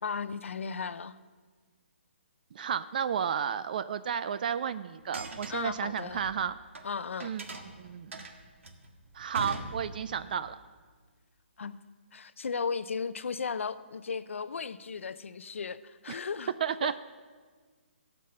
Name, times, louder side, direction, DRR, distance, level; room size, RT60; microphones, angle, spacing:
voice 1, 0.0-1.2 5.5-6.2 6.8-7.3 11.6-11.8 12.1-16.5 16.8-17.0, left 5 dB, 80° left, 14 dB, 0.6 m, -35 dB
voice 2, 2.5-6.6 7.2-8.2 9.1-10.6 16.1-16.2 16.6-17.0, right 8 dB, 45° right, 14 dB, 0.4 m, -32 dB
sound 1, 5.0-6.9 7.2-10.3, right 2 dB, 80° right, 1.7 m, -42 dB
16.0 x 5.5 x 7.7 m, 1.5 s
hypercardioid pair, 160°, 7 cm